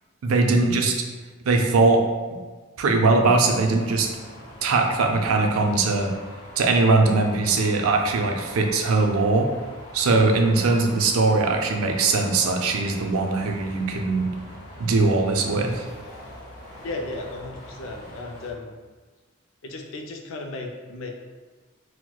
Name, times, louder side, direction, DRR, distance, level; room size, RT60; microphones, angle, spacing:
voice 1, 0.2-1.0 1.5-2.0 2.8-4.1 4.6-6.1 6.6-9.5 9.9-14.3 14.8-15.8, right 3 dB, 85° right, 3 dB, 0.4 m, -21 dB
sound 1, 3.5-18.5, equal, 35° left, 0.8 m, -43 dB
voice 2, 16.8-18.7 19.6-21.1, left 2 dB, 70° left, 2 dB, 0.4 m, -35 dB
4.4 x 2.1 x 2.2 m, 1.3 s
head